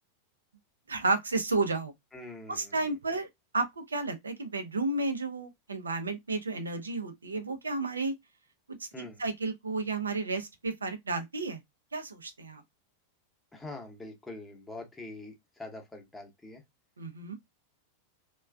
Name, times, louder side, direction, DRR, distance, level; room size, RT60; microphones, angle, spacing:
voice 1, 0.9-1.9 2.5-3.3 3.5-8.1 8.8-11.6 11.9-12.6 17.0-17.3, right 3 dB, 75° right, 0.5 m, -32 dB
voice 2, 2.1-2.9 8.9-9.2 13.5-16.6, left 2 dB, 10° left, 0.8 m, -44 dB
3.1 x 2.2 x 2.2 m
figure-of-eight pair, 90°, 0 cm